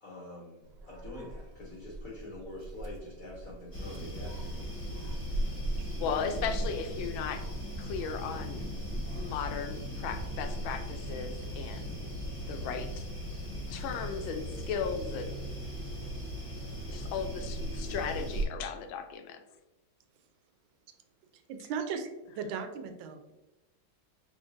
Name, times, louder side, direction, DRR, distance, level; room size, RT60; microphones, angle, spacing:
voice 1, 0.0-4.5, left 1 dB, 55° left, -3 dB, 1.0 m, -45 dB
Dog, 0.6-16.3, right 2 dB, 65° right, 0.8 m, -45 dB
sound 1, 3.7-18.4, equal, 15° left, 1.1 m, -37 dB
voice 2, 6.0-7.5 7.8-8.6 9.2-11.9 12.5-13.0 13.7-15.5 16.9-19.4, left 6 dB, 85° left, 7 dB, 1.3 m, -36 dB
voice 3, 21.5-23.2, right 6 dB, 85° right, 7 dB, 1.4 m, -37 dB
5.0 x 3.7 x 2.5 m, 1.0 s
omnidirectional pair, 2.1 m